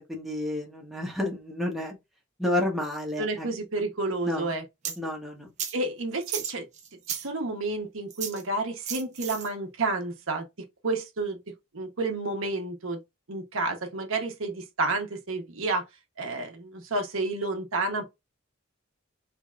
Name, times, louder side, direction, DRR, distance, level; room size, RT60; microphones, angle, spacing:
voice 1, 0.0-2.0 2.4-3.5 4.2-4.5 5.0-5.5, left 1 dB, ahead, 1.0 m, -30 dB
voice 2, 3.2-4.9 5.7-6.7 7.1-10.5 10.8-11.4 11.7-13.0 13.3-15.8 16.2-18.1, right 2 dB, 80° right, 1.0 m, -30 dB
sound 1, 4.8-5.0 5.6-5.7 6.2-7.3 8.1-8.4 8.9-9.5, right 8 dB, 35° right, 0.7 m, -34 dB
3.6 x 3.3 x 2.4 m
head